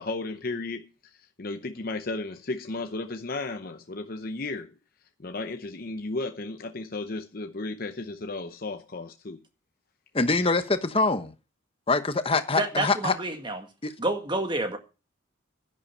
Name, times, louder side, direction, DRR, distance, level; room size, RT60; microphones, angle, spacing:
voice 1, 0.0-4.7 5.2-9.4, left 2 dB, 45° left, 0.8 m, -34 dB
voice 2, 10.1-11.3 11.9-13.1 13.8-13.9, left 3 dB, 30° left, 1.0 m, -24 dB
voice 3, 12.5-13.6 14.0-14.8, right 2 dB, 25° right, 1.7 m, -28 dB
10.5 x 10.0 x 5.6 m
head